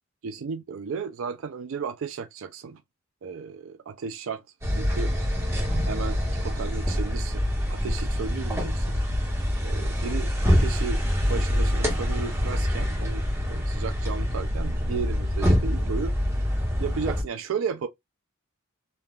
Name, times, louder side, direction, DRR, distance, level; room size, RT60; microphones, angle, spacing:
voice 1, 0.2-2.8 3.2-4.4 4.7-5.1 5.8-8.9 9.6-11.0 11.3-16.1 16.8-17.9, right 5 dB, 65° right, 0.4 m, -34 dB
sound 1, 4.6-17.2, equal, 15° right, 1.0 m, -25 dB
3.4 x 2.3 x 2.2 m
head